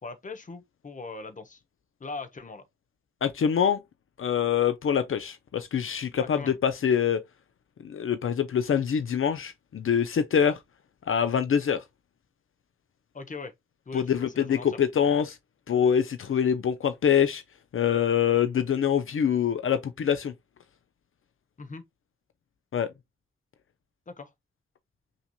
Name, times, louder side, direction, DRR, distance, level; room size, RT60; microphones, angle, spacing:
voice 1, 0.0-1.6 2.0-2.6 6.2-6.6 13.1-13.5 13.9-14.7 21.6-21.8 24.1-24.3, left 3 dB, 35° left, 0.9 m, -40 dB
voice 2, 3.2-3.8 4.2-7.2 7.8-10.6 11.1-11.8 13.9-15.4 15.7-17.4 17.7-20.3 22.7-22.9, left 8 dB, 75° left, 0.6 m, -25 dB
5.7 x 2.9 x 2.3 m
wide cardioid pair, 140°, 21 cm